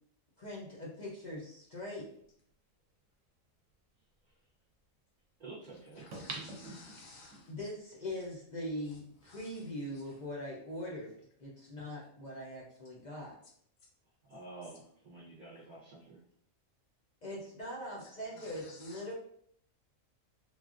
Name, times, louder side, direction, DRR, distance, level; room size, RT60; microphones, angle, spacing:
voice 1, 0.4-2.1 7.5-11.1 11.4-13.4 17.2-19.1, left 1 dB, 50° left, -4 dB, 0.5 m, -41 dB
sound 1, 2.5-2.6 6.1-7.4 7.9-8.0, right 3 dB, 70° right, 0.9 m, -43 dB
voice 2, 5.4-6.1 14.2-16.2 18.3-18.4, right 2 dB, 45° right, -6 dB, 0.6 m, -50 dB
voice 3, 6.0-7.5 8.9-9.0 9.2-9.7 9.9-10.2 18.0-18.1 18.4-19.0, left 3 dB, 80° left, -2 dB, 1.0 m, -55 dB
3.2 x 2.3 x 2.4 m, 0.65 s
omnidirectional pair, 1.4 m